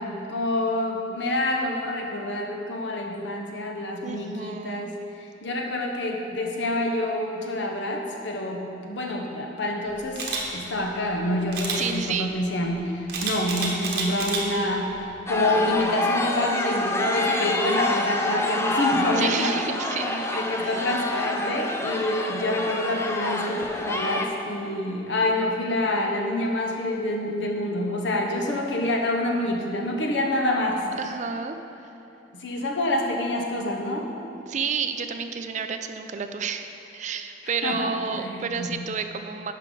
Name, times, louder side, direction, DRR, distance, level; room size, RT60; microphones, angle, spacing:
voice 1, 0.0-19.6 19.9-20.0 20.3-30.9 32.3-34.1 37.6-38.7, left 1 dB, 80° left, 1 dB, 1.0 m, -27 dB
voice 2, 4.0-4.9 11.8-12.3 19.2-20.9 31.0-31.6 31.8-31.9 34.5-39.5, right 6 dB, 40° right, 7 dB, 0.4 m, -31 dB
Camera, 10.2-10.4 11.5-11.8 13.1-14.4 14.9-15.2, right 4 dB, 60° right, 1.2 m, -29 dB
sound 1, 14.0-28.1, left 2 dB, 50° left, 1.5 m, -50 dB
sound 2, 15.3-24.3, left 1 dB, 15° left, 0.5 m, -27 dB
11.0 x 5.6 x 3.8 m, 2.9 s
head